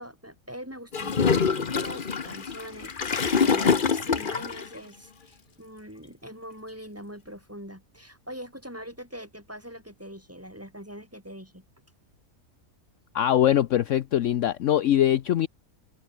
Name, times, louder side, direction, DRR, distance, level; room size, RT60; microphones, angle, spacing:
voice 1, 0.0-11.6, equal, 10° right, 7.5 m, -42 dB
Gurgling / Toilet flush, 0.9-4.7, left 5 dB, 40° left, 1.2 m, -25 dB
voice 2, 13.1-15.5, left 11 dB, 65° left, 1.0 m, -22 dB
open air
omnidirectional pair, 1.5 m